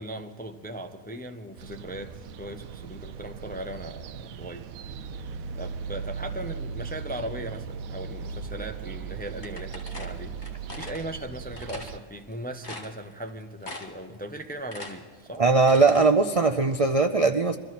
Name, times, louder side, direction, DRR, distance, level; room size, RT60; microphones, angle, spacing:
voice 1, 0.0-4.7 5.1-10.4 10.7-15.4, right 1 dB, 15° left, 6 dB, 0.4 m, -38 dB
sound 1, 1.6-12.0, right 6 dB, 80° right, 1.0 m, -38 dB
sound 2, 9.4-11.0 11.6-11.9 12.3-12.4 12.6-13.3 13.6-14.1 14.4-16.1, left 2 dB, 50° left, 2.4 m, -41 dB
voice 2, 15.4-17.6, right 4 dB, 60° right, 7 dB, 0.3 m, -20 dB
23.0 x 13.5 x 4.2 m, 1.5 s
omnidirectional pair, 1.5 m